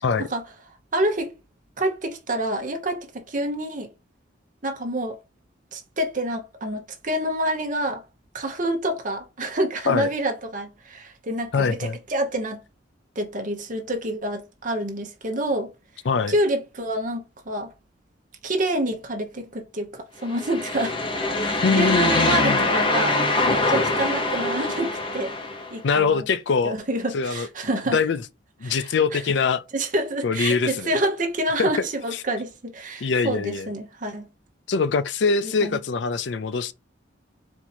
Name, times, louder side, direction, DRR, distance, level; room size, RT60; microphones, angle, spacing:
voice 1, 0.9-1.3 1.8-3.9 4.6-5.2 5.7-8.0 8.3-12.6 13.1-15.7 16.3-17.7 18.4-21.0 21.4-23.2 23.7-25.3 25.7-26.2 26.6-28.0 28.6-29.2 29.7-34.3 35.4-35.8, right 1 dB, 40° right, 1.0 m, -27 dB
voice 2, 11.5-12.0 16.1-16.3 21.6-22.6 25.8-26.7 27.1-27.5 27.9-28.2 28.6-29.6 30.2-30.9 31.6-31.7 33.0-33.7 34.7-36.7, left 5 dB, 65° left, 0.4 m, -23 dB
sound 1, 20.3-25.7, left 2 dB, 25° left, 0.9 m, -23 dB
4.4 x 2.7 x 4.3 m
head